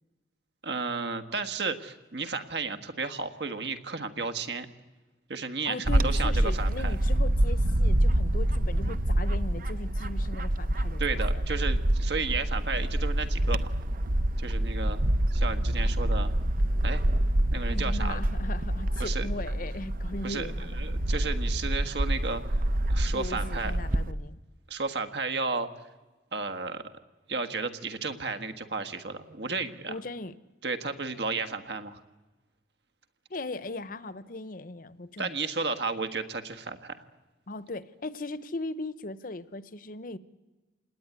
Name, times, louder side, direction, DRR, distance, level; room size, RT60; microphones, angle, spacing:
voice 1, 0.6-4.7 5.3-7.0 11.0-13.7 14.4-15.0 15.3-16.3 16.8-17.0 17.5-18.2 19.0-19.3 20.2-22.5 22.9-23.8 24.7-25.7 26.3-26.9 27.3-30.0 30.6-32.0 35.2-37.0, right 4 dB, 70° right, 8 dB, 1.7 m, -33 dB
voice 2, 5.7-11.4 17.6-20.8 23.1-24.4 29.9-30.3 33.3-35.3 37.5-40.2, left 2 dB, 50° left, 14 dB, 0.9 m, -38 dB
Bird / Wind, 5.9-24.1, right 1 dB, 50° right, 0.8 m, -27 dB
27.5 x 19.5 x 9.7 m, 1.2 s
head